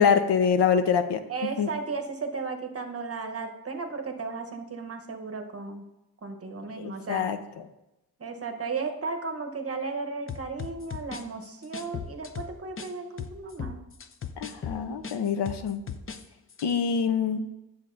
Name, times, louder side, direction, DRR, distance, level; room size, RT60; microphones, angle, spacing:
voice 1, 0.0-1.7 6.8-7.7 14.4-15.8 16.6-17.5, left 6 dB, 80° left, 10 dB, 0.7 m, -25 dB
voice 2, 1.3-5.8 6.2-7.3 8.2-13.8, right 4 dB, 35° right, 5 dB, 0.9 m, -35 dB
sound 1, 10.3-12.9 13.2-16.2 16.5-16.7, left 7 dB, 35° left, 0.5 m, -37 dB
9.8 x 7.2 x 2.5 m, 0.91 s
wide cardioid pair, 130°, 40 cm